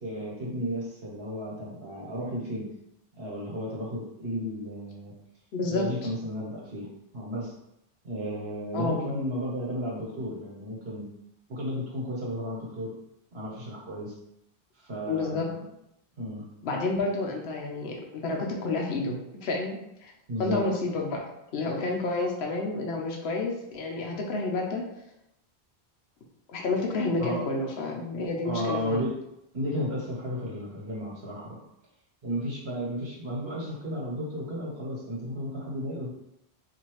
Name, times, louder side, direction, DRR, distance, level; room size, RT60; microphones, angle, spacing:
voice 1, 0.0-2.7 3.1-5.1 5.7-6.9 7.1-7.5 8.0-11.0 11.5-12.9 13.3-14.1 14.8-15.6 16.2-16.5 20.3-20.7 27.2-27.5 28.4-29.1 29.5-31.6 32.2-36.1, equal, 75° right, -3 dB, 1.3 m, -33 dB
voice 2, 5.5-6.1 8.7-9.1 15.1-15.5 16.6-20.1 20.4-21.2 21.5-24.8 26.5-29.1, left 3 dB, 85° left, 0 dB, 1.0 m, -30 dB
4.1 x 2.8 x 3.0 m, 0.83 s
omnidirectional pair, 1.0 m